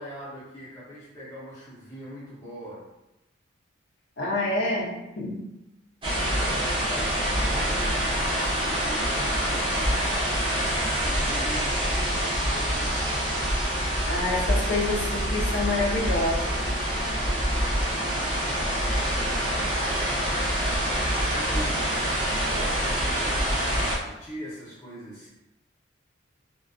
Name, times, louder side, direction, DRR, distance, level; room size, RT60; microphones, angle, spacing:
voice 1, 0.0-2.8 6.2-10.3 11.0-13.1 18.1-19.9 21.3-21.9 22.3-25.3, equal, 15° left, -11 dB, 0.6 m, -41 dB
voice 2, 4.2-5.5 14.1-16.6, left 2 dB, 55° left, -3 dB, 0.6 m, -27 dB
sound 1, 6.0-24.0, equal, 25° right, 0.5 m, -26 dB
2.3 x 2.2 x 2.4 m, 0.93 s
head